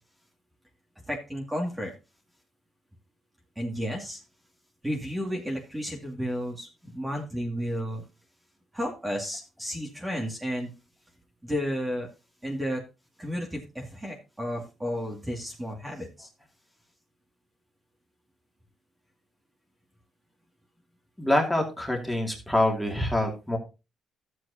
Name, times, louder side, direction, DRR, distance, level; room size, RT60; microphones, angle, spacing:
voice 1, 1.1-1.9 3.6-4.2 4.8-8.0 8.7-10.7 11.4-12.1 12.4-12.8 13.2-16.3, equal, 15° right, 0 dB, 2.4 m, -32 dB
voice 2, 21.2-23.6, left 1 dB, 5° left, 1 dB, 2.6 m, -25 dB
13.0 x 7.9 x 2.8 m, 0.30 s
cardioid pair, 90°, 0 cm